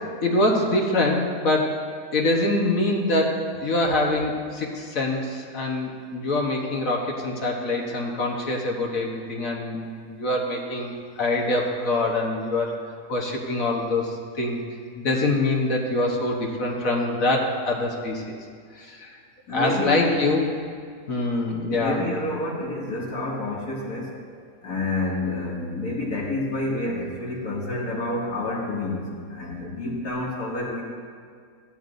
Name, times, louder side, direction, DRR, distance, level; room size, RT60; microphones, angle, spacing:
voice 1, 0.2-1.8 2.1-9.8 10.1-12.8 13.1-14.6 15.0-18.4 18.8-19.1 19.5-20.5 21.1-22.0, left 2 dB, 65° left, -1 dB, 1.7 m, -24 dB
voice 2, 19.5-20.3 21.6-24.1 24.6-30.8, left 2 dB, 85° left, -5 dB, 2.9 m, -28 dB
16.0 x 12.5 x 2.6 m, 2.1 s
omnidirectional pair, 1.5 m